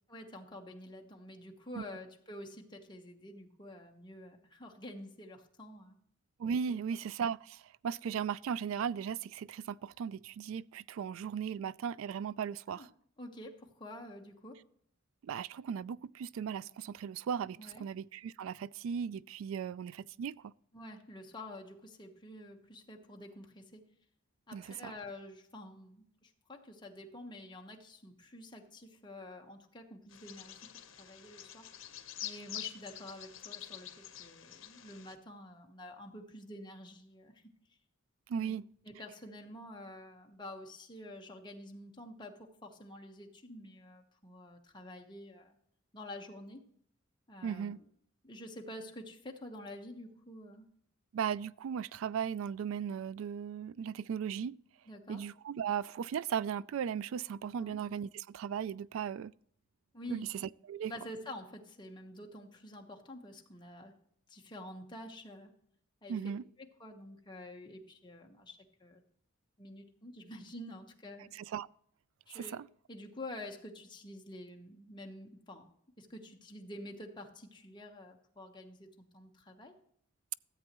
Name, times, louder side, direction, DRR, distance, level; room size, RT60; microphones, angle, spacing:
voice 1, 0.1-6.0 6.7-6.8 12.7-12.9 13.2-14.6 17.6-17.8 20.7-23.8 24.5-30.7 31.0-31.7 32.2-33.9 34.2-37.5 38.3-38.6 38.8-45.5 45.9-46.6 47.3-47.9 48.2-50.7 54.9-55.2 57.6-57.8 59.9-60.3 60.9-63.9 64.3-65.5 66.0-66.2 66.6-69.0 69.6-71.3 72.3-72.6 72.9-75.7 76.0-79.7, left 1 dB, 25° left, 1.2 m, -48 dB
voice 2, 6.4-12.9 15.2-20.5 24.5-24.9 38.3-38.6 47.4-47.8 51.1-54.6 55.1-59.3 60.1-60.3 60.7-60.9 66.1-66.4 71.3-71.7 72.3-72.7, right 7 dB, 80° right, 0.3 m, -37 dB
Bird vocalization bird call bird song, 30.1-35.1, left 11 dB, 70° left, 1.0 m, -47 dB
14.0 x 7.9 x 3.0 m
head